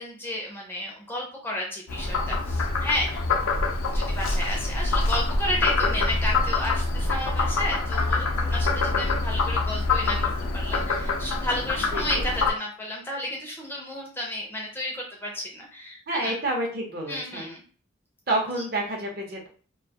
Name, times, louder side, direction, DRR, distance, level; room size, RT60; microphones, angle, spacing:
voice 1, 0.0-3.3 3.9-16.3 17.1-17.6, left 1 dB, 10° left, -1 dB, 0.4 m, -32 dB
Frog, 1.9-12.5, left 3 dB, 90° left, 0.5 m, -25 dB
voice 2, 11.9-12.3 16.1-17.5 18.3-19.5, right 1 dB, 50° right, 1 dB, 0.7 m, -29 dB
2.4 x 2.2 x 2.7 m, 0.41 s
head